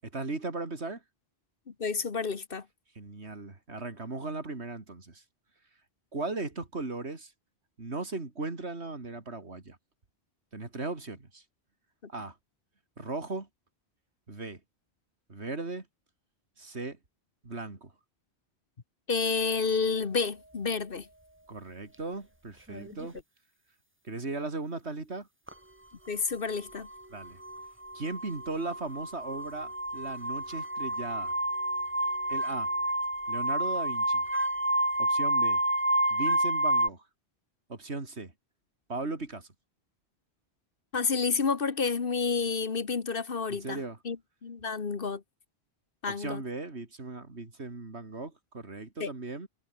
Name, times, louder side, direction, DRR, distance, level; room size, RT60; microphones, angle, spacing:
voice 1, 0.0-1.0 3.0-5.2 6.1-7.3 7.8-9.8 10.5-11.4 12.1-12.4 13.0-13.5 14.3-14.6 15.3-15.9 16.6-17.0 17.4-17.9 21.5-23.2 24.0-25.3 27.1-27.4 27.9-31.3 32.3-32.7 33.3-34.2 35.0-35.6 36.1-37.0 37.7-38.3 38.9-39.5 43.5-44.0 46.1-49.5, right 3 dB, 80° right, 3.5 m, -37 dB
voice 2, 1.8-2.6 19.1-21.1 26.1-26.9 40.9-44.2 44.4-45.2 46.0-46.4 49.0-49.1, left 5 dB, 55° left, 1.5 m, -30 dB
sound 1, 22.7-23.2 25.5-25.6 26.5-36.9, right 1 dB, 10° right, 1.7 m, -29 dB
omnidirectional pair, 1.1 m